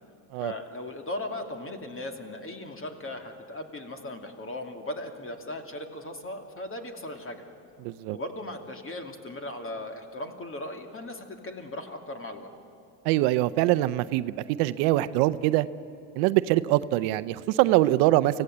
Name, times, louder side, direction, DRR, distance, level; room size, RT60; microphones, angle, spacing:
voice 1, 0.4-7.5 8.1-12.5, left 1 dB, 25° left, 5 dB, 2.6 m, -37 dB
voice 2, 7.8-8.2 13.0-14.3 14.6-15.7 16.2-18.4, right 16 dB, 80° right, 14 dB, 0.8 m, -23 dB
25.0 x 16.5 x 8.0 m, 2.8 s
supercardioid pair, 95°, 49 cm